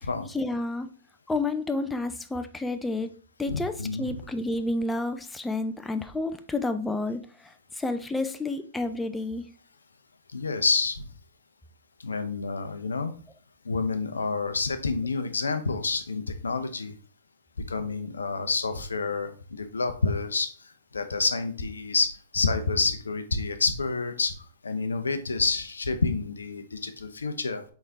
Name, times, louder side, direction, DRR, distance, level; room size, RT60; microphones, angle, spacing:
voice 1, 0.3-0.9 1.3-3.1 3.4-9.5, left 2 dB, 10° left, 8 dB, 0.4 m, -30 dB
voice 2, 3.5-4.2 10.3-11.1 12.0-13.1 13.6-16.9 17.7-24.3 24.6-27.6, left 4 dB, 85° left, 9 dB, 0.6 m, -28 dB
4.1 x 3.6 x 3.4 m, 0.41 s
figure-of-eight pair, 110°, 0 cm